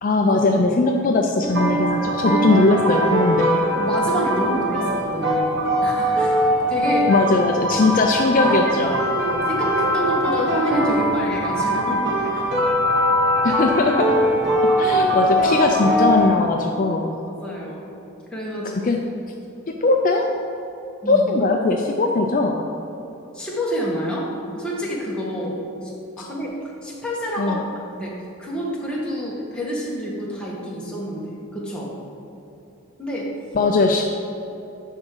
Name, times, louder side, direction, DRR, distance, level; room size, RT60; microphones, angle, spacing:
voice 1, 0.0-3.6 7.1-8.9 13.4-14.1 14.8-17.1 18.6-19.0 19.8-20.3 21.1-22.7 27.4-27.6 33.5-34.2, left 3 dB, 40° left, 2 dB, 0.4 m, -19 dB
sound 1, 1.4-16.3, equal, 55° right, 1.3 m, -21 dB
voice 2, 3.7-6.4 6.7-7.1 8.4-8.6 8.8-12.4 17.3-17.9 18.3-18.8 21.0-21.3 23.3-25.9 26.2-28.1 28.4-31.9 33.0-33.3, equal, 5° left, -5 dB, 1.4 m, -28 dB
10.0 x 3.7 x 6.5 m, 2.9 s
head